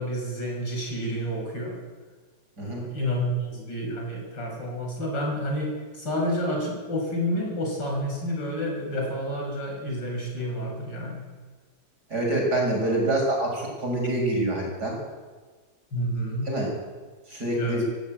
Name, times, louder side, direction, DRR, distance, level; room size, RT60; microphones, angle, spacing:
voice 1, 0.0-1.8 2.6-11.2 15.9-16.5 17.6-17.8, equal, 75° left, 0 dB, 7.1 m, -29 dB
voice 2, 12.1-15.0 16.5-16.7 17.3-17.8, right 1 dB, 60° right, 0 dB, 7.3 m, -26 dB
18.0 x 16.0 x 9.1 m, 1.4 s
omnidirectional pair, 2.0 m